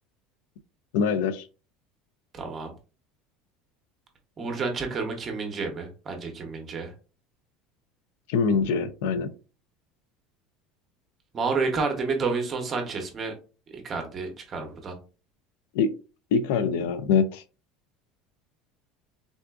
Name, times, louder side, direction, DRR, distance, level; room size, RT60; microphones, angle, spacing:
voice 1, 0.9-1.5 8.3-9.3 15.7-15.9 16.3-17.4, left 5 dB, 80° left, 12 dB, 0.3 m, -24 dB
voice 2, 2.3-2.7 4.4-6.9 11.3-13.3 13.7-15.0, right 4 dB, 25° right, 4 dB, 0.7 m, -30 dB
3.7 x 2.4 x 2.3 m, 0.34 s
cardioid pair, 165°, 0 cm